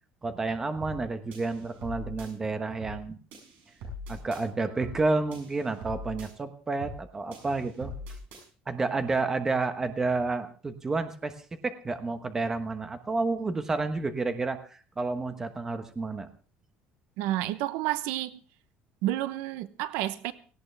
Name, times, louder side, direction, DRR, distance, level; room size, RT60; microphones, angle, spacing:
voice 1, 0.2-3.2 4.1-7.9 8.7-11.3 11.6-16.3, right 3 dB, 15° right, 1.2 m, -30 dB
sound 1, 0.8-1.0 1.3-2.3 2.8-3.0 3.3-4.4 4.8-5.0 5.3-6.3 6.8-7.0 7.3-8.4, left 1 dB, 65° right, 7.0 m, -41 dB
voice 2, 17.2-18.4 19.0-20.3, right 14 dB, 80° right, 0.9 m, -30 dB
18.0 x 16.5 x 3.4 m
cardioid pair, 170°, 3 cm